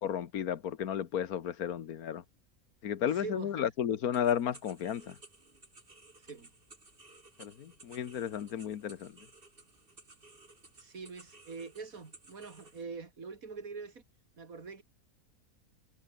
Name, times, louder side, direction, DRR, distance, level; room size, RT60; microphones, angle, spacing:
voice 1, 0.0-2.2 2.8-5.1 7.4-9.1, left 9 dB, 80° left, 1.6 m, -33 dB
voice 2, 3.1-3.7 6.2-6.5 10.8-14.0 14.4-14.8, right 4 dB, 70° right, 3.0 m, -44 dB
sound 1, 4.1-12.8, right 2 dB, 35° right, 3.3 m, -57 dB
omnidirectional pair, 1.5 m